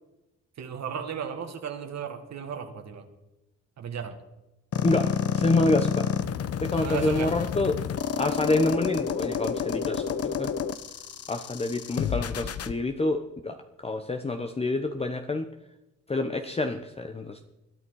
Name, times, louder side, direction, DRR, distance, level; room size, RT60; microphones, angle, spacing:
voice 1, 0.6-3.0 3.8-4.2 6.8-7.3, right 7 dB, 60° right, 5 dB, 2.0 m, -35 dB
sound 1, 4.7-12.7, left 7 dB, 55° left, 0.9 m, -29 dB
voice 2, 4.8-6.1 6.6-7.7 8.2-10.5 11.3-13.6 13.8-15.5 16.1-17.4, left 2 dB, 20° left, 6 dB, 1.0 m, -27 dB
21.5 x 11.0 x 4.8 m, 0.96 s
cardioid pair, 90°, 30 cm